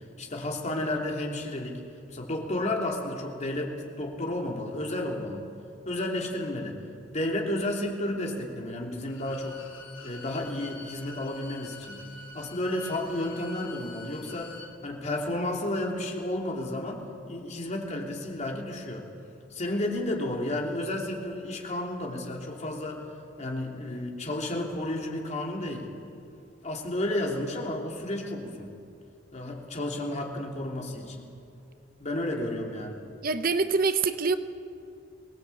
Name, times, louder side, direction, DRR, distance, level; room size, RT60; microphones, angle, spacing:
voice 1, 0.2-1.8 2.1-5.4 5.8-6.8 7.1-9.6 10.0-12.0 12.3-14.5 14.8-19.1 19.5-23.0 23.4-25.9 26.6-28.7 29.3-31.2 32.0-33.0, left 1 dB, 40° left, 0 dB, 3.2 m, -32 dB
Bowed string instrument, 9.0-14.7, left 3 dB, 85° left, 3.8 m, -46 dB
voice 2, 33.2-34.4, right 4 dB, 50° right, 11 dB, 0.8 m, -25 dB
23.0 x 18.5 x 8.5 m, 2.6 s
head